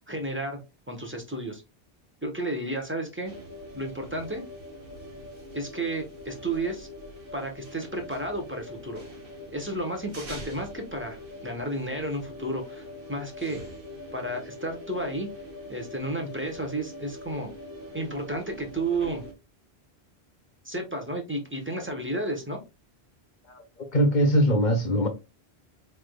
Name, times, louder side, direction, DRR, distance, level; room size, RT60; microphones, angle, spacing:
voice 1, 0.1-0.6 0.9-1.6 2.2-3.4 3.7-4.4 5.5-6.9 7.3-9.0 9.5-13.6 14.1-15.3 15.7-17.5 17.9-19.2 20.6-22.6, right 1 dB, 10° right, 0.9 m, -32 dB
sound 1, 3.2-19.3, left 1 dB, 60° right, 1.6 m, -43 dB
voice 2, 23.5-25.1, equal, 50° left, 0.9 m, -22 dB
4.8 x 3.5 x 2.2 m
omnidirectional pair, 1.1 m